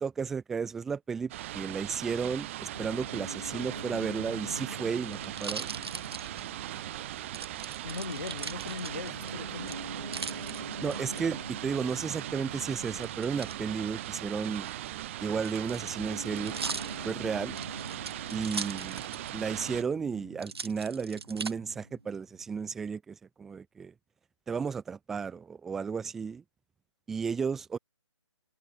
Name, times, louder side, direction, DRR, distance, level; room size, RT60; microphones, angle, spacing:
voice 1, 0.0-5.7 10.8-14.7 15.2-17.6 18.3-23.9 24.5-26.4 27.1-27.8, right 5 dB, ahead, 0.3 m, -33 dB
sound 1, 1.3-19.8, right 15 dB, 25° right, 3.1 m, -39 dB
Piano, 2.7-22.1, right 1 dB, 85° right, 2.7 m, -46 dB
sound 2, 4.4-6.8 7.3-9.3 9.7-11.2 13.0-13.6 14.5-19.4 19.7-19.8 20.4-21.5 22.1-22.7, right 4 dB, 55° right, 5.4 m, -40 dB
voice 2, 7.8-9.9, left 4 dB, 55° left, 3.5 m, -39 dB
figure-of-eight pair, 140°, 15 cm